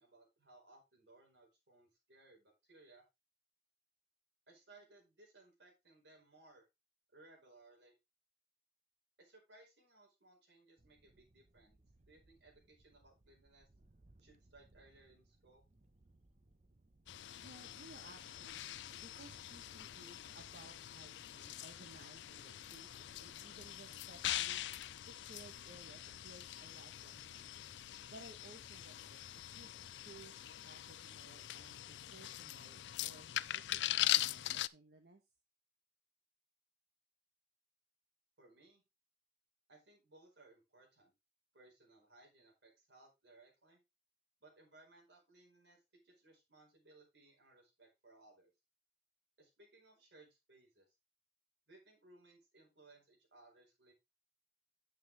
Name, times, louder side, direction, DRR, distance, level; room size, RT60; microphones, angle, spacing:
voice 1, 0.0-3.0 4.5-6.7 7.1-8.0 9.2-11.8 12.1-13.7 14.2-15.7 38.4-38.8 39.7-41.1 41.5-43.8 44.4-48.5 49.4-50.8 51.7-53.9, right 2 dB, 90° right, 0 dB, 4.8 m, -64 dB
sound 1, 10.8-30.3, right 2 dB, 40° right, 0.9 m, -69 dB
sound 2, 17.1-34.7, left 14 dB, 90° left, 0.4 m, -42 dB
voice 2, 17.4-24.6 25.1-27.6 28.1-35.2, right 2 dB, 65° right, 4 dB, 1.2 m, -59 dB
9.3 x 7.5 x 3.4 m, 0.22 s
head